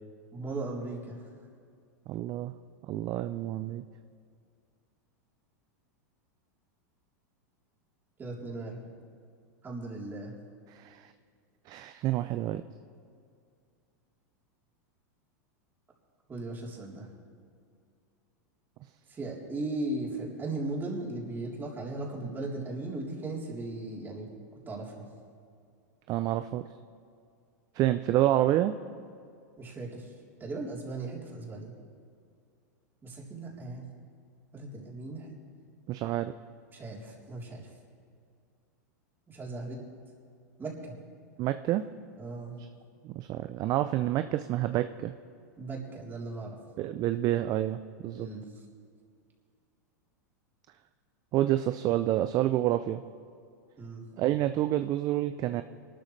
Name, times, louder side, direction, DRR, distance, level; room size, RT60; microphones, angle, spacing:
voice 1, 0.3-1.2 8.2-8.9 9.6-10.3 16.3-17.1 19.1-24.3 24.7-25.0 29.6-30.1 30.4-31.7 33.0-33.9 34.5-35.3 36.7-37.7 39.3-39.8 40.6-40.9 42.2-42.6 45.6-46.6 48.1-48.4 53.8-54.0, right 2 dB, 20° right, -3 dB, 3.7 m, -37 dB
voice 2, 2.1-2.5 2.9-3.8 10.7-11.1 11.7-12.6 26.1-26.6 27.7-28.7 35.9-36.3 41.4-41.9 42.6-42.7 43.0-45.1 46.8-48.3 51.3-53.0 54.2-55.6, right 13 dB, 40° right, 10 dB, 0.5 m, -28 dB
23.0 x 12.5 x 3.3 m, 2.3 s
hypercardioid pair, 110°, 9 cm